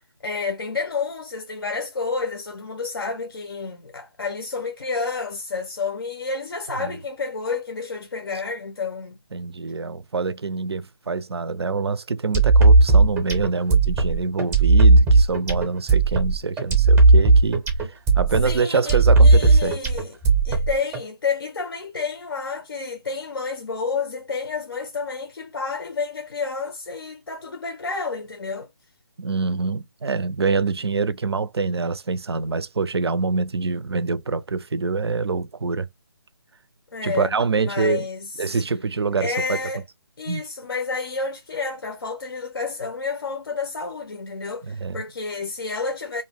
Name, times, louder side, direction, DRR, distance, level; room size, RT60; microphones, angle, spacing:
voice 1, 0.2-9.2 18.4-20.1 20.4-28.7 36.9-37.4 37.6-38.6 39.2-39.8 40.2-46.2, left 4 dB, 65° left, 0.5 m, -30 dB
voice 2, 9.3-19.8 29.2-35.9 37.0-38.1 38.4-39.6 40.3-40.4 44.6-45.0, right 4 dB, 80° right, 0.4 m, -25 dB
sound 1, 12.3-21.0, right 3 dB, 10° right, 0.5 m, -16 dB
2.6 x 2.1 x 3.3 m
figure-of-eight pair, 150°, 13 cm